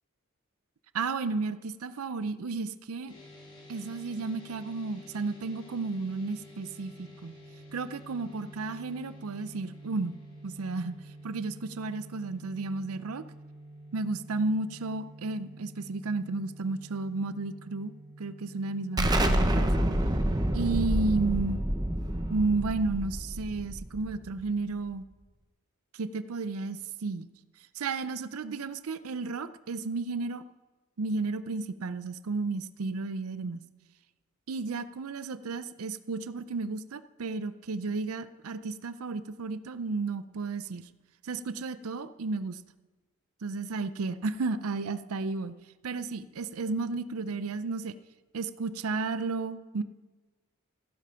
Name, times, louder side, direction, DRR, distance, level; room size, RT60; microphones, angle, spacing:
voice 1, 0.9-3.1 3.7-7.3 7.7-10.2 10.4-11.0 11.2-13.2 13.9-17.9 18.2-19.7 20.5-21.6 22.3-25.0 25.9-27.3 27.7-30.4 31.0-33.6 34.5-40.9 41.2-42.6 43.4-45.5 45.8-47.9 48.3-49.8, right 3 dB, 85° right, 13 dB, 0.5 m, -33 dB
sound 1, 3.1-19.0, right 1 dB, 25° left, 3.0 m, -49 dB
Explosion, 19.0-24.4, right 1 dB, 20° right, 0.9 m, -28 dB
15.0 x 10.0 x 5.7 m, 1.2 s
head